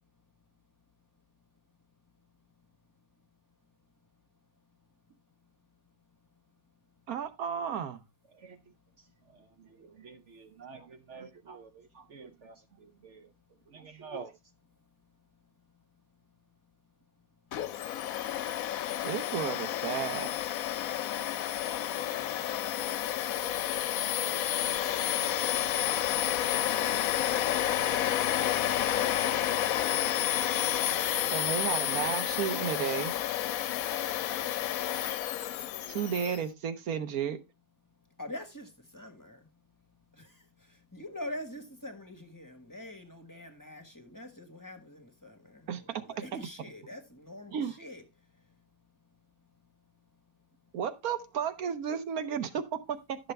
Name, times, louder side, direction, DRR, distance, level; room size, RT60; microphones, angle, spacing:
voice 1, 7.1-8.0 19.0-20.3 31.3-33.1 35.9-37.4 45.7-45.8 47.5-47.7 50.7-53.2, right 8 dB, 85° right, 1.4 m, -33 dB
voice 2, 9.8-11.7 11.9-12.5 13.0-13.3 13.7-14.3, right 5 dB, 60° right, 1.0 m, -47 dB
Domestic sounds home sounds, 17.5-36.4, left 11 dB, 75° left, 1.1 m, -30 dB
voice 3, 38.2-39.5 40.1-48.0, left 1 dB, 15° left, 1.4 m, -45 dB
11.5 x 6.6 x 3.3 m
omnidirectional pair, 1.5 m